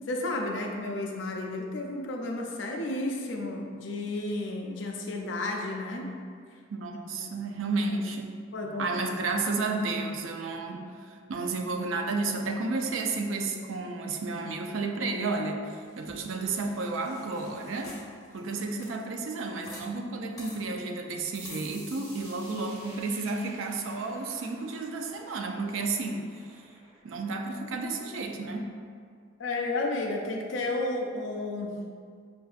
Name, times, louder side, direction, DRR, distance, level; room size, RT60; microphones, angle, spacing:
voice 1, 0.1-6.1 7.2-7.4 8.5-8.9 29.4-31.7, left 2 dB, 70° left, 1 dB, 0.5 m, -32 dB
voice 2, 6.7-8.4 8.8-17.9 18.3-26.4 27.0-28.7, right 3 dB, 75° right, 3 dB, 0.4 m, -32 dB
sound 1, 15.9-19.8 20.1-20.2 20.4-20.6 21.4-21.7, left 2 dB, 15° left, 0.9 m, -48 dB
sound 2, 21.3-28.7, equal, 10° right, 0.5 m, -52 dB
5.3 x 2.6 x 2.4 m, 2.1 s
head